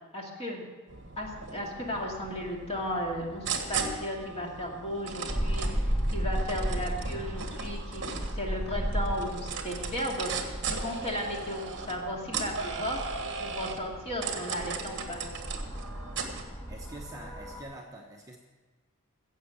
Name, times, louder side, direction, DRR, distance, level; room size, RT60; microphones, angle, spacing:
voice 1, 0.1-0.6 1.2-10.3 10.7-15.2, equal, 25° left, -1 dB, 2.3 m, -35 dB
sound 1, 0.9-16.4, right 5 dB, 55° right, 1.5 m, -37 dB
sound 2, 5.3-17.6, equal, 10° left, 1.6 m, -35 dB
voice 2, 16.7-18.4, right 1 dB, 15° right, 0 dB, 1.0 m, -45 dB
15.5 x 7.8 x 7.0 m, 1.3 s
head